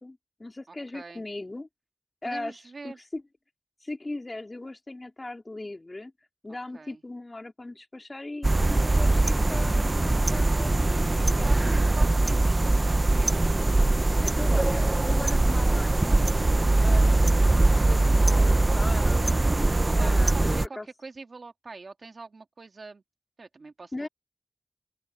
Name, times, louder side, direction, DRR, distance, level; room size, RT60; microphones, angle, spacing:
voice 1, 0.0-1.7 2.2-2.6 2.8-3.2 3.8-6.1 6.4-11.1 11.4-11.5 14.2-16.2 16.8-20.9 23.9-24.1, left 2 dB, 40° left, 3.7 m, -39 dB
voice 2, 0.7-1.2 2.2-3.0 6.7-7.0 11.4-13.4 13.8-14.3 16.5-17.0 19.7-23.0 23.4-24.1, right 3 dB, 80° right, 2.0 m, -43 dB
sound 1, 8.4-20.7, right 2 dB, 40° right, 0.7 m, -22 dB
open air
wide cardioid pair, 65°, 0 cm